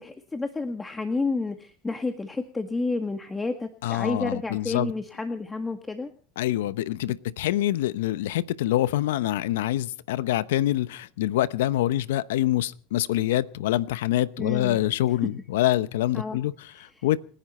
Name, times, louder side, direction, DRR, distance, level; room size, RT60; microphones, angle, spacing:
voice 1, 0.0-6.1 14.4-14.8 16.1-16.4, left 3 dB, 15° left, 6 dB, 1.8 m, -30 dB
voice 2, 3.8-4.9 6.4-17.2, left 14 dB, 85° left, 16 dB, 0.9 m, -25 dB
28.5 x 11.0 x 4.4 m, 0.43 s
supercardioid pair, 105°, 0 cm